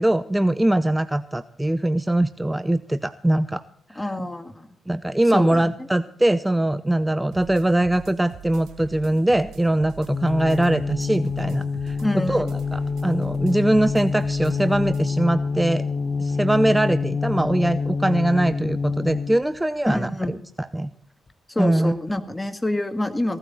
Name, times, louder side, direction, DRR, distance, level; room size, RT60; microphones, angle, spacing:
voice 1, 0.0-3.6 3.9-4.0 4.9-12.0 12.3-15.8 16.2-20.1 20.7-20.9 21.6-21.9, right 1 dB, 15° right, 14 dB, 0.6 m, -22 dB
voice 2, 4.0-4.7 5.3-5.9 12.0-12.5 19.9-20.4 21.5-23.4, left 1 dB, 15° left, 8 dB, 1.9 m, -27 dB
sound 1, 7.3-15.1, right 8 dB, 75° right, 0.9 m, -43 dB
sound 2, 10.1-19.4, left 4 dB, 40° left, 1.0 m, -26 dB
16.5 x 12.5 x 4.2 m, 0.65 s
hypercardioid pair, 45°, 0 cm